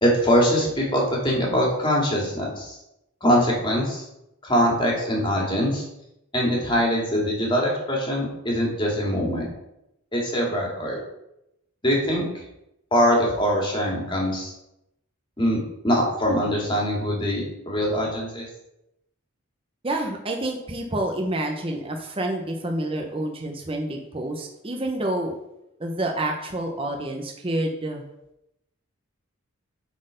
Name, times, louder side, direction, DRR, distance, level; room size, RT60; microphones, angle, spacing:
voice 1, 0.0-2.8 3.2-4.0 4.4-5.8 6.3-9.5 10.1-11.0 11.8-12.4 12.9-14.5 15.4-18.5, equal, 20° left, -2 dB, 2.1 m, -23 dB
voice 2, 19.8-25.3 25.8-28.0, right 1 dB, 25° right, 2 dB, 0.8 m, -28 dB
8.1 x 4.4 x 5.1 m, 0.84 s
head